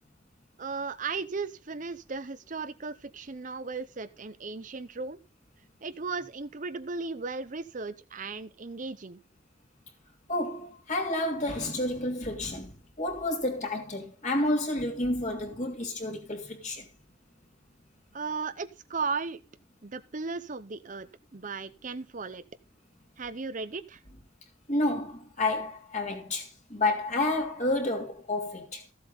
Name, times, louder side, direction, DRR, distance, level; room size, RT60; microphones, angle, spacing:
voice 1, 0.6-5.2 5.8-9.2 18.1-19.4 19.8-21.1 21.3-22.4 23.2-24.0, right 4 dB, 40° right, 0.7 m, -36 dB
voice 2, 10.3-16.9 24.7-28.8, left 2 dB, 35° left, 2.9 m, -30 dB
14.5 x 8.0 x 3.9 m
head